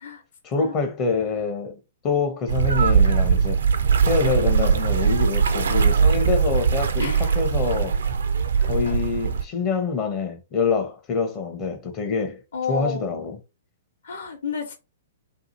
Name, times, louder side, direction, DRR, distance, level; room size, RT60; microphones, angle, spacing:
voice 1, 0.4-1.8 2.0-3.6 4.1-8.0 8.6-12.4 12.7-13.4, left 4 dB, 30° left, 0.6 m, -26 dB
sound 1, 2.5-9.4, right 6 dB, 70° right, 0.4 m, -20 dB
voice 2, 7.0-7.3 8.6-9.0 12.5-13.2 14.0-14.8, left 5 dB, 65° left, 0.9 m, -31 dB
2.7 x 2.4 x 2.7 m
figure-of-eight pair, 110°, 0 cm